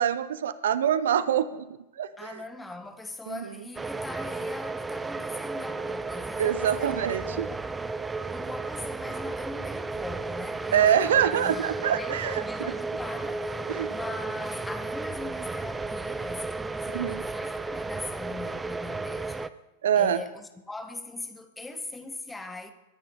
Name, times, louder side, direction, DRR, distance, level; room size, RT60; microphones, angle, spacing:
voice 1, 0.0-1.6 2.0-2.4 3.3-3.4 6.4-7.5 10.7-12.7 13.7-13.9 16.9-17.2 19.8-20.2, right 9 dB, 60° right, 0.7 m, -25 dB
voice 2, 2.2-7.9 8.3-19.4 19.9-22.7, left 2 dB, 10° left, 1.6 m, -41 dB
sound 1, 3.8-19.5, right 3 dB, 10° right, 0.6 m, -33 dB
22.5 x 10.0 x 4.8 m
figure-of-eight pair, 90°, 0 cm